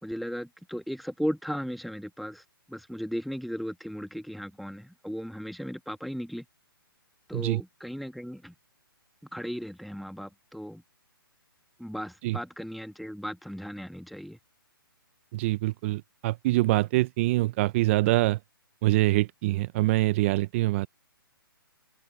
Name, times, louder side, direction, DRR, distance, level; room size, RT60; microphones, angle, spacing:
voice 1, 0.0-2.4 2.7-6.4 7.3-8.5 9.3-10.8 11.8-14.4, equal, ahead, 1.5 m, -36 dB
voice 2, 15.3-18.4 18.8-20.9, right 18 dB, 35° right, 0.6 m, -25 dB
hypercardioid pair, 140°, 12 cm